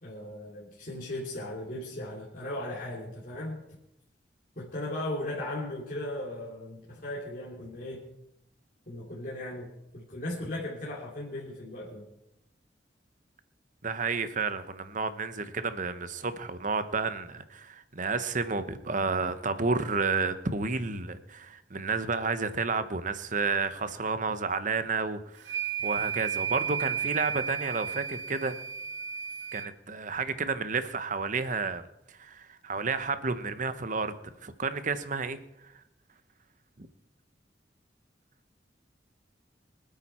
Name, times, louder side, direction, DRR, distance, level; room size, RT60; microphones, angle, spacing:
voice 1, 0.0-3.6 4.6-8.0 8.9-12.1, left 1 dB, 50° left, -5 dB, 3.1 m, -37 dB
voice 2, 13.8-28.6 29.5-31.8 32.1-34.1 34.4-35.4 35.6-35.7 36.8-36.9, right 4 dB, 45° right, 11 dB, 1.0 m, -31 dB
sound 1, 25.4-29.7, right 8 dB, 90° right, 0.9 m, -33 dB
24.5 x 8.9 x 4.4 m, 0.85 s
head